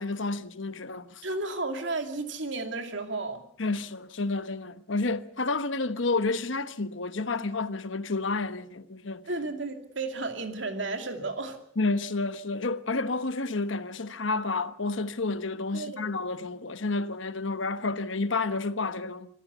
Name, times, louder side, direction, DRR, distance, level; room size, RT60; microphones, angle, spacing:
voice 1, 0.0-1.2 3.6-9.3 11.8-19.3, left 3 dB, 80° left, 1.2 m, -30 dB
voice 2, 1.2-3.4 9.3-11.6 15.7-16.1, right 3 dB, 70° right, 2.5 m, -33 dB
26.0 x 14.0 x 8.2 m
head